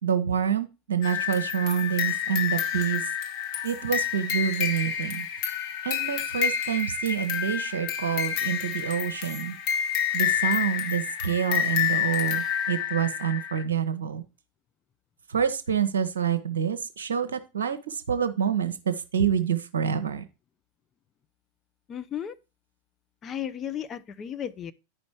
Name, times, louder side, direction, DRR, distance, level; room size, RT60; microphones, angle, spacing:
voice 1, 0.0-3.1 3.6-5.3 5.8-9.6 10.1-14.2 15.3-20.2, right 8 dB, 65° right, 0.8 m, -27 dB
sound 1, 1.0-13.6, left 9 dB, 45° left, 1.4 m, -29 dB
voice 2, 21.9-22.4 23.2-24.7, left 9 dB, 25° left, 0.6 m, -34 dB
10.0 x 5.3 x 4.6 m
figure-of-eight pair, 90°, 0 cm